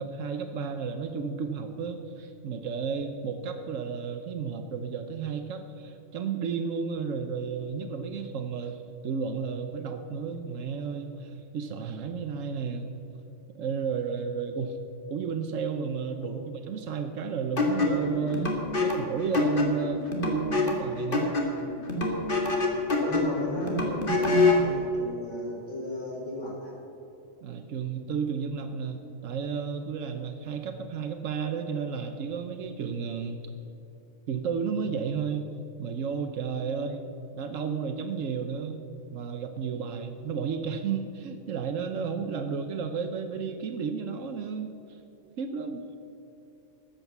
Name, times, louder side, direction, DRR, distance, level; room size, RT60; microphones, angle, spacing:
voice 1, 0.0-13.0 13.5-14.8 15.1-18.5 18.8-21.3 27.4-33.5 34.3-35.4 35.8-37.0 37.3-38.8 39.1-44.7 45.4-45.9, right 6 dB, 85° right, 7 dB, 1.1 m, -32 dB
sound 1, 17.6-24.7, left 3 dB, 45° left, 2.0 m, -26 dB
voice 2, 22.7-26.7 36.7-36.9, left 1 dB, 70° left, -4 dB, 4.2 m, -35 dB
13.5 x 8.7 x 7.1 m, 2.9 s
omnidirectional pair, 1.3 m